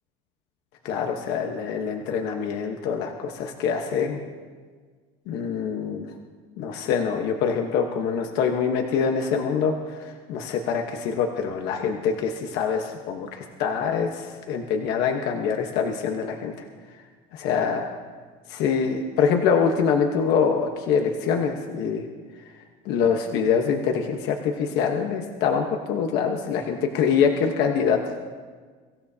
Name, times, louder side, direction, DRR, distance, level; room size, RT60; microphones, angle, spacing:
voice 1, 0.8-4.2 5.3-6.1 6.6-9.7 10.0-16.5 17.3-17.9 18.5-22.0 22.8-28.0, left 6 dB, 65° left, 3 dB, 1.2 m, -24 dB
24.0 x 15.0 x 2.8 m, 1.5 s
cardioid pair, 155°, 18 cm